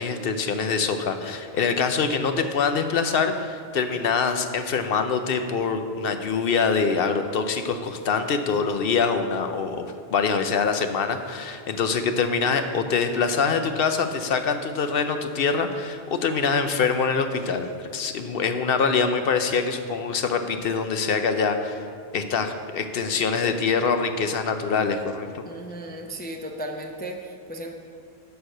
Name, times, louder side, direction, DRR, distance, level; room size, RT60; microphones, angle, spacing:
voice 1, 0.0-21.8 22.1-25.4, left 5 dB, 65° left, 7 dB, 0.8 m, -24 dB
voice 2, 25.5-27.7, right 1 dB, 15° left, 2 dB, 0.4 m, -35 dB
11.0 x 4.6 x 6.5 m, 2.5 s
omnidirectional pair, 1.1 m